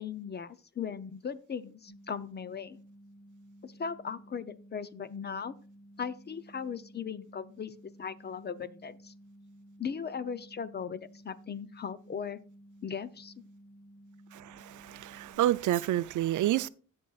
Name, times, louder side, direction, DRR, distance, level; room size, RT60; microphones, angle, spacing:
voice 1, 0.0-2.8 3.6-5.5 6.0-9.1 9.8-12.4 12.8-13.3, left 6 dB, 35° left, 0.5 m, -38 dB
sound 1, 1.9-15.4, right 1 dB, 5° right, 2.0 m, -55 dB
voice 2, 14.3-16.7, right 13 dB, 70° right, 0.4 m, -29 dB
16.0 x 6.3 x 2.4 m
cardioid pair, 115°, 31 cm